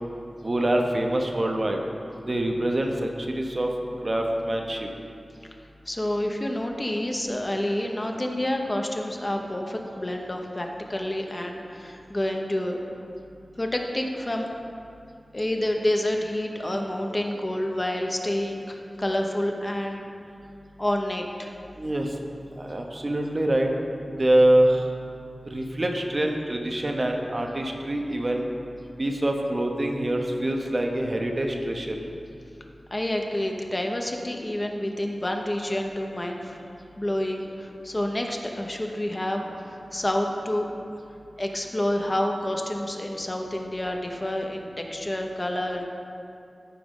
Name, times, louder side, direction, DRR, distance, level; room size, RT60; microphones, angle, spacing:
voice 1, 0.4-1.8 2.3-3.7 4.0-4.9 21.8-22.1 22.6-23.7 24.2-24.8 25.5-28.5 29.0-32.0, right 1 dB, 40° right, 2 dB, 0.8 m, -25 dB
voice 2, 5.9-12.8 13.6-14.5 15.3-20.0 20.8-21.5 32.9-36.6 37.0-40.7 41.4-45.8, left 1 dB, 25° left, 2 dB, 0.7 m, -28 dB
14.0 x 5.0 x 3.7 m, 2.6 s
wide cardioid pair, 95°, 0 cm